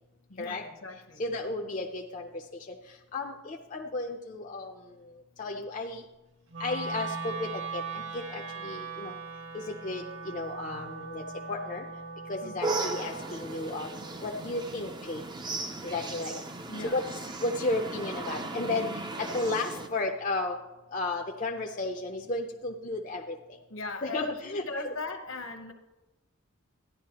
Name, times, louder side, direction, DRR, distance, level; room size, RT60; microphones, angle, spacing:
voice 1, 0.3-1.2 12.4-12.6 16.7-17.0 19.2-19.4 23.7-25.7, left 3 dB, 65° left, 6 dB, 1.0 m, -39 dB
voice 2, 1.2-2.8 3.1-5.1 5.4-6.0 6.6-9.1 9.5-11.9 12.3-13.9 14.2-15.2 15.8-16.4 16.9-17.0 17.4-20.6 20.9-23.4 24.0-24.9, left 2 dB, 35° left, 1 dB, 0.5 m, -33 dB
Wind instrument woodwind instrument, 6.5-16.7, right 4 dB, 60° right, 1.1 m, -41 dB
sound 1, 12.6-19.9, right 3 dB, 20° right, 0.4 m, -36 dB
13.0 x 10.5 x 2.9 m, 1.0 s
head